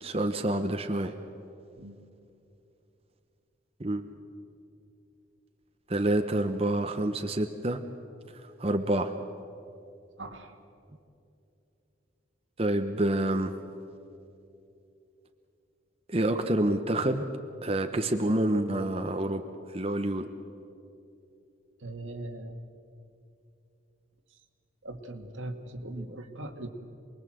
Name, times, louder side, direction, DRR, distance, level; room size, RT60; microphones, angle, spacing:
voice 1, 0.0-1.1 3.8-4.1 5.9-7.8 8.6-9.1 12.6-13.5 16.1-17.2 17.6-19.4 19.7-20.3, right 1 dB, 30° right, 6 dB, 0.9 m, -27 dB
voice 2, 10.2-10.6 21.8-22.6 24.8-26.7, right 1 dB, 85° right, 5 dB, 2.0 m, -40 dB
28.0 x 21.0 x 7.8 m, 2.7 s
head